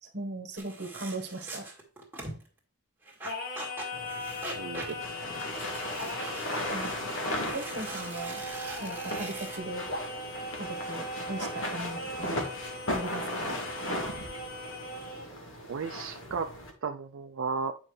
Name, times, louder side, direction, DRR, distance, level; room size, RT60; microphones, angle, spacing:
voice 1, 0.0-1.7 6.7-7.0 7.5-8.4 8.8-9.9 10.5-12.4 12.9-13.6, right 2 dB, 55° right, 5 dB, 1.3 m, -38 dB
sound 1, 0.6-2.5 3.1-9.6, right 2 dB, 10° right, 1.8 m, -42 dB
Singing, 3.2-15.3, left 1 dB, 50° left, 1.8 m, -39 dB
sound 2, 3.9-16.7, left 1 dB, 80° left, 1.7 m, -37 dB
voice 2, 4.5-5.3 15.7-16.5 16.8-17.8, right 5 dB, 75° right, 6 dB, 0.4 m, -35 dB
8.9 x 5.4 x 3.2 m, 0.39 s
head